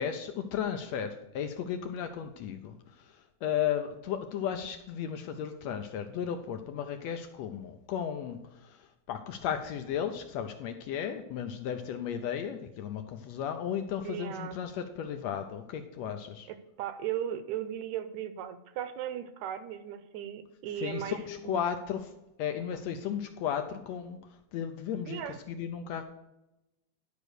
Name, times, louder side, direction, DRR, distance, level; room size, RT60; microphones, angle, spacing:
voice 1, 0.0-16.5 20.8-22.1 22.4-24.2 24.5-26.0, left 8 dB, 75° left, 7 dB, 1.6 m, -35 dB
voice 2, 14.0-14.6 16.5-21.6 25.1-25.4, right 10 dB, 75° right, 11 dB, 1.9 m, -37 dB
10.5 x 5.1 x 6.3 m, 0.93 s
omnidirectional pair, 3.5 m